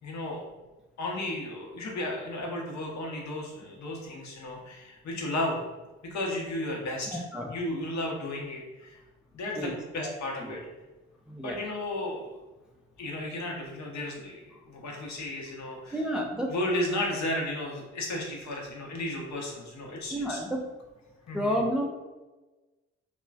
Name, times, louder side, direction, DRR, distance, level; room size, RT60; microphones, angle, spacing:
voice 1, 0.0-0.4 1.0-5.6 6.0-7.2 7.5-9.0 9.3-10.6 11.4-12.4 13.0-16.0 16.5-20.4 21.3-21.5, left 1 dB, 55° left, -1 dB, 0.9 m, -34 dB
voice 2, 7.1-7.5 9.6-9.7 10.0-10.1 10.4-10.6 11.3-11.6 15.9-16.5 20.1-20.7 21.3-21.9, equal, ahead, 1 dB, 0.4 m, -30 dB
2.9 x 2.2 x 2.3 m, 1.2 s
hypercardioid pair, 50°, 34 cm